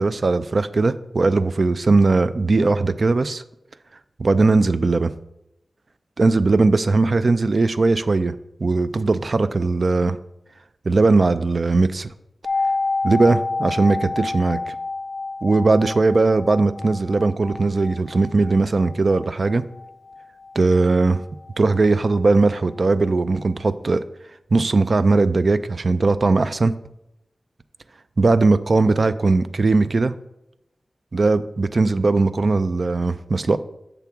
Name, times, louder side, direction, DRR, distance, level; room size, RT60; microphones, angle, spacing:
voice 1, 0.0-3.4 4.2-5.1 6.2-10.2 10.9-12.1 13.0-14.8 15.4-19.6 20.6-21.2 21.6-24.0 24.5-26.7 28.2-30.1 31.1-33.6, right 3 dB, 50° right, 13 dB, 0.3 m, -19 dB
sound 1, 12.4-22.2 22.4-22.5, left 3 dB, 85° left, 0.5 m, -29 dB
6.8 x 3.5 x 5.8 m, 0.84 s
wide cardioid pair, 115°, 0 cm